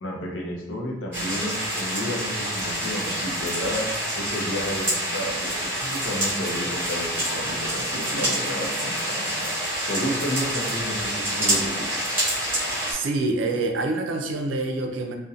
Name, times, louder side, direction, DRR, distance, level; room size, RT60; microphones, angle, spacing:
voice 1, 0.0-3.9 4.2-9.5 9.9-12.0, equal, 85° left, -1 dB, 0.6 m, -31 dB
sound 1, 1.1-12.9, right 1 dB, 10° right, 0.9 m, -27 dB
voice 2, 12.9-15.2, right 2 dB, 90° right, 3 dB, 0.4 m, -26 dB
2.6 x 2.1 x 2.4 m, 0.97 s
head